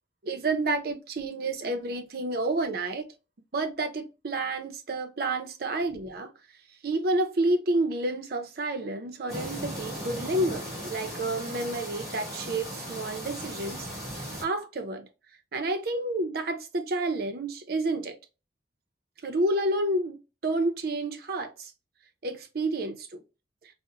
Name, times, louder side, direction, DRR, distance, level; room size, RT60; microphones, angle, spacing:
voice 1, 0.2-3.1 3.5-6.3 6.8-13.9 14.4-15.1 15.5-18.2 19.2-21.7 22.2-23.2, right 2 dB, 55° right, 0.5 m, -29 dB
sound 1, 9.3-14.4, equal, ahead, 1.7 m, -37 dB
4.0 x 2.0 x 2.4 m
head